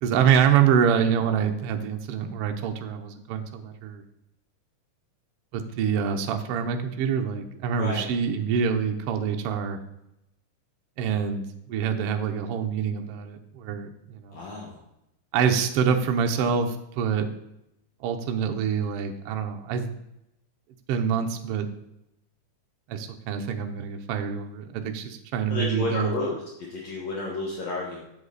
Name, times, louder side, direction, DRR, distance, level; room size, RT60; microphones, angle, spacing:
voice 1, 0.0-4.0 5.5-9.8 11.0-14.4 15.3-17.3 18.0-19.9 20.9-21.7 22.9-26.1, right 7 dB, 75° right, 5 dB, 1.3 m, -26 dB
voice 2, 7.8-8.1 14.3-14.8 25.5-28.0, left 2 dB, 60° left, -3 dB, 2.4 m, -31 dB
8.1 x 7.4 x 4.0 m, 0.86 s
omnidirectional pair, 3.7 m